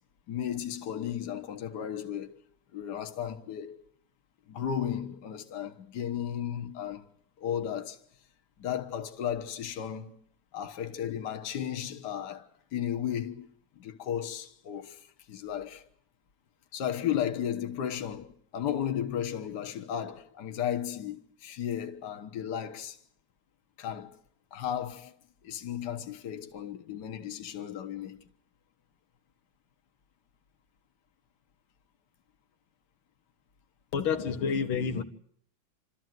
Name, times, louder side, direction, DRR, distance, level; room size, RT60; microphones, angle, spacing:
voice 1, 0.3-2.3 2.7-3.8 4.5-7.1 7.4-8.0 8.6-10.2 10.5-13.5 13.8-15.8 16.7-23.0 23.8-24.2 24.5-25.1 25.4-28.2, left 9 dB, 60° left, 1.7 m, -34 dB
voice 2, 33.9-35.0, left 6 dB, 85° left, 2.0 m, -29 dB
27.5 x 13.5 x 9.3 m
omnidirectional pair, 2.2 m